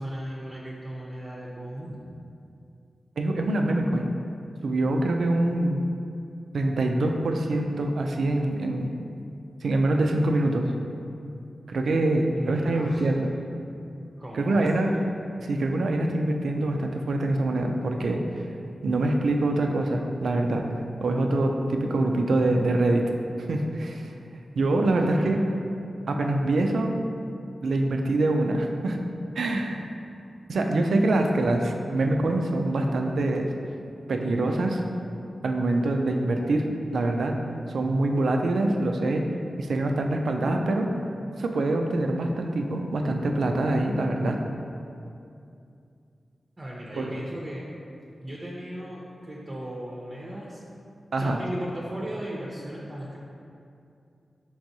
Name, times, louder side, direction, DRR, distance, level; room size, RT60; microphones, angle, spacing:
voice 1, 0.0-2.0 12.3-13.1 14.2-14.9 24.9-25.3 46.6-47.7 48.2-50.6 51.2-53.2, right 1 dB, 35° right, -5 dB, 0.6 m, -36 dB
voice 2, 3.2-4.1 4.6-5.8 6.5-8.9 9.6-10.7 11.7-13.3 14.3-14.9 15.4-18.5 18.8-20.7 21.0-23.1 23.4-24.1 24.5-25.4 26.1-27.0 27.6-29.0 29.4-29.9 30.5-33.5 34.1-34.8 35.4-37.4 37.7-39.2 39.6-40.9 41.4-44.4 47.0-47.1 51.1-51.4, right 2 dB, 85° right, 3 dB, 0.3 m, -25 dB
4.6 x 3.5 x 2.7 m, 2.5 s
cardioid pair, 55°, 0 cm